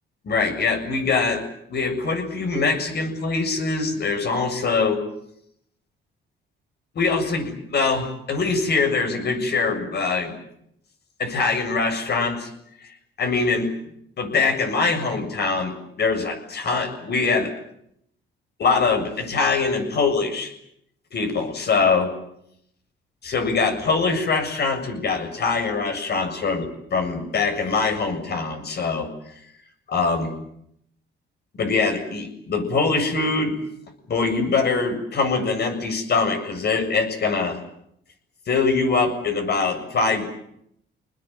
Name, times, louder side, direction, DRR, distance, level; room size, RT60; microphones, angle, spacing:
voice 1, 0.2-1.4 1.7-5.0 6.9-10.3 11.2-12.5 13.2-13.7 14.2-17.5 18.6-20.5 21.1-22.1 23.2-29.1 29.9-30.3 31.5-33.5 34.1-37.6 38.5-40.3, left 4 dB, 55° left, 6 dB, 7.5 m, -23 dB
27.5 x 20.0 x 9.3 m, 0.74 s
cardioid pair, 90°, 20 cm